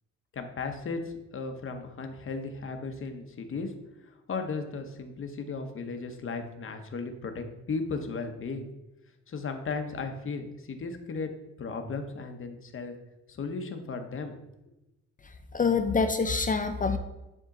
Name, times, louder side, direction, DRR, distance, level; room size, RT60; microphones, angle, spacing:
voice 1, 0.3-1.0 1.3-3.7 4.3-8.7 9.3-11.3 11.6-12.9 13.3-14.4, left 4 dB, 45° left, 6 dB, 1.0 m, -35 dB
voice 2, 15.2-17.0, left 4 dB, 25° left, 8 dB, 0.5 m, -26 dB
10.0 x 3.6 x 3.8 m, 0.98 s
cardioid pair, 90°, 30 cm